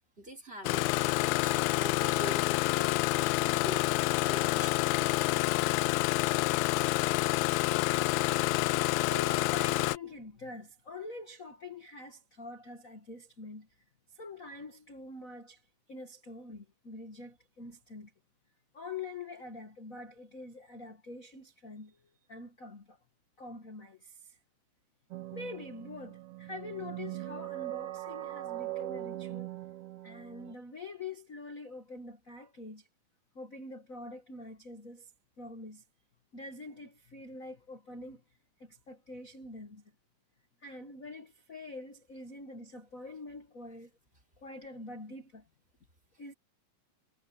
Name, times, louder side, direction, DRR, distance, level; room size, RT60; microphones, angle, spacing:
voice 1, 0.2-5.1, right 2 dB, 15° right, 3.0 m, -45 dB
Engine starting, 0.6-10.0, left 20 dB, 85° left, 2.3 m, -28 dB
voice 2, 8.2-13.7 14.1-15.6 15.9-18.1 18.7-23.0 23.4-24.4 25.3-29.5 30.0-32.9 33.3-35.1 35.4-35.8 36.3-38.2 38.6-39.8 40.6-43.9 44.4-45.4 46.2-46.3, left 3 dB, 45° left, 1.1 m, -45 dB
sound 1, 25.1-30.5, right 16 dB, 55° right, 1.8 m, -41 dB
omnidirectional pair, 4.3 m